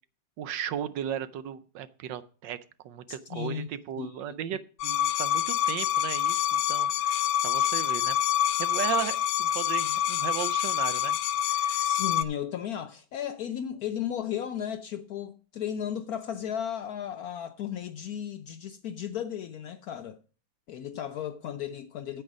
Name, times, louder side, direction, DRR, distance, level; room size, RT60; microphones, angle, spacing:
voice 1, 0.4-2.6 2.8-8.2 8.6-11.1 11.4-11.9, right 10 dB, 75° right, 1.3 m, -36 dB
voice 2, 3.1-3.7 4.0-4.2 11.8-20.2 20.7-22.2, left 9 dB, 70° left, 0.9 m, -35 dB
sound 1, 4.8-12.2, left 11 dB, 90° left, 1.4 m, -26 dB
9.2 x 7.9 x 4.9 m
omnidirectional pair, 2.1 m